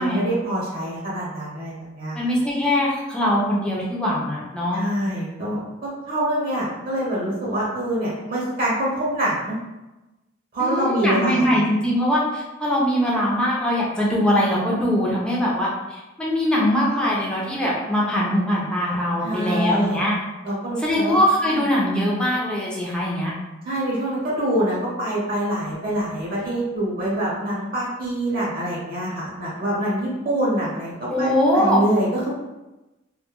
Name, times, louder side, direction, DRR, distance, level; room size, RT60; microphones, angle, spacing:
voice 1, 0.0-2.2 4.7-5.6 6.1-9.6 10.5-11.6 19.2-20.0 20.4-21.6 23.6-32.3, right 1 dB, 50° right, -6 dB, 0.8 m, -25 dB
voice 2, 2.1-4.8 10.6-15.7 16.2-20.1 20.8-23.3 31.1-31.8, equal, 5° left, -6 dB, 0.5 m, -21 dB
2.2 x 2.1 x 2.9 m, 1.0 s
head